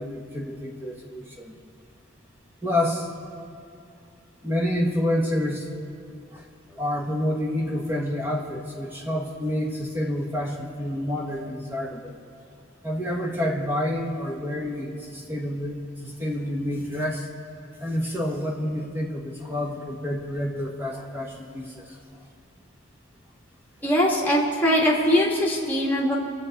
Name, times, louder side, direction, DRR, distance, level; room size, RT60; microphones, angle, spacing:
voice 1, 0.0-1.5 2.6-3.1 4.4-5.7 6.3-6.4 6.7-12.1 12.8-17.3 17.8-21.8, left 1 dB, 10° right, -1 dB, 1.4 m, -28 dB
voice 2, 23.8-26.2, equal, 10° left, -4 dB, 1.8 m, -21 dB
21.0 x 7.8 x 4.1 m, 2.6 s
head